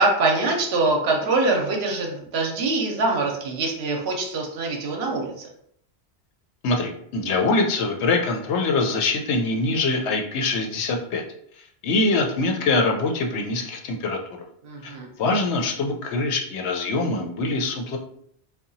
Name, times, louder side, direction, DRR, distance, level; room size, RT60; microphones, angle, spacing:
voice 1, 0.0-5.5 14.6-15.1, right 3 dB, 75° right, 0 dB, 0.8 m, -24 dB
voice 2, 6.6-11.2 11.8-14.4 14.8-18.0, left 3 dB, 85° left, 2 dB, 0.9 m, -24 dB
2.8 x 2.2 x 2.6 m, 0.68 s
omnidirectional pair, 1.1 m